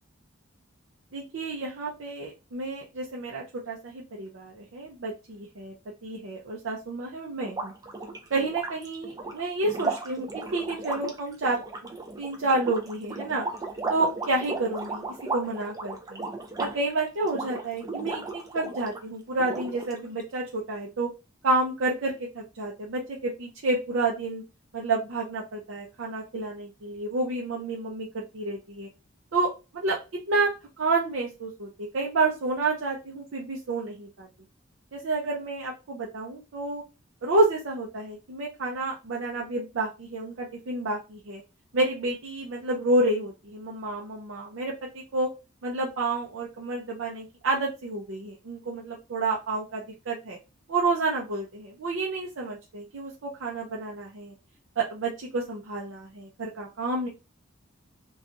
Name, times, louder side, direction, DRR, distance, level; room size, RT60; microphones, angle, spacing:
voice 1, 1.1-5.7 6.0-7.7 8.3-11.6 12.2-13.4 13.9-15.0 15.3-16.3 16.6-21.1 21.4-24.4 24.7-28.9 29.3-30.0 30.3-34.3 34.9-36.8 37.2-41.4 41.7-45.3 45.6-50.4 50.7-54.3 54.8-57.1, right 2 dB, 70° right, -2 dB, 0.5 m, -29 dB
sound 1, 7.4-19.0 19.4-20.2, right 3 dB, 20° right, 0.4 m, -35 dB
2.9 x 2.3 x 2.5 m, 0.28 s
head